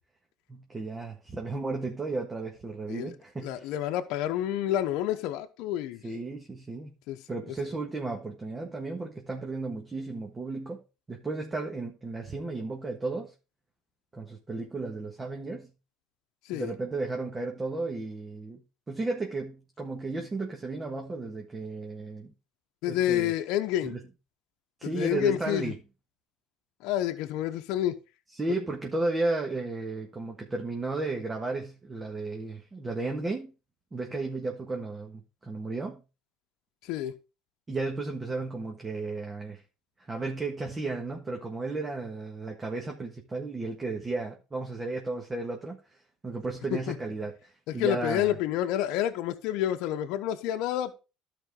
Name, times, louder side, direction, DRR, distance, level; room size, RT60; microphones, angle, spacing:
voice 1, 0.5-3.7 6.0-6.9 7.3-10.8 11.1-13.3 14.1-15.7 16.5-18.6 18.9-22.3 22.9-23.3 23.8-24.0 24.8-25.8 28.3-33.5 33.9-36.0 37.7-39.6 40.0-48.4, right 3 dB, 25° right, 1.6 m, -34 dB
voice 2, 3.4-6.0 7.1-7.2 16.5-16.7 22.8-24.0 24.8-25.7 26.8-28.0 36.9-37.1 46.7-46.9 47.7-51.0, left 12 dB, 70° left, 0.8 m, -29 dB
12.0 x 5.1 x 3.8 m
supercardioid pair, 90°, 0 cm